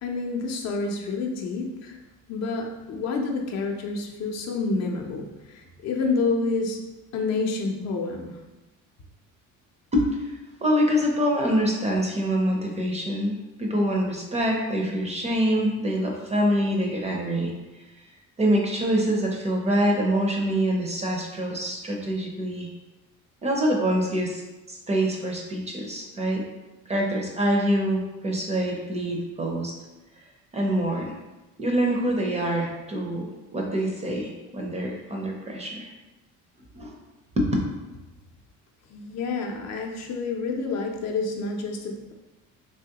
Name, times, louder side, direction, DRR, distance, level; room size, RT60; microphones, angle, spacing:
voice 1, 0.0-2.0 2.3-6.8 7.1-8.4 38.9-42.1, left 3 dB, 55° left, 2 dB, 0.6 m, -28 dB
voice 2, 9.9-10.3 10.6-17.5 18.4-22.7 23.4-24.4 24.7-26.4 26.9-29.7 30.5-31.1 31.6-35.9 36.7-36.9 37.4-37.6, equal, 20° right, 0 dB, 0.5 m, -25 dB
3.5 x 2.9 x 2.8 m, 1.1 s
cardioid pair, 145°, 32 cm